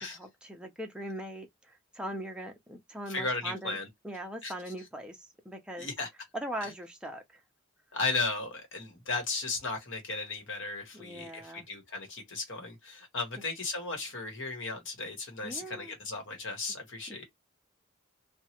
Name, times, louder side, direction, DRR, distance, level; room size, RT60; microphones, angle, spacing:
voice 1, 0.0-3.8 4.0-5.9 6.3-7.4 10.9-11.7 15.4-15.9 17.1-17.2, right 1 dB, 5° right, 0.6 m, -41 dB
voice 2, 3.1-3.9 4.4-4.5 5.8-6.1 6.6-6.7 7.9-17.2, left 3 dB, 60° left, 1.2 m, -35 dB
3.0 x 2.2 x 2.9 m
head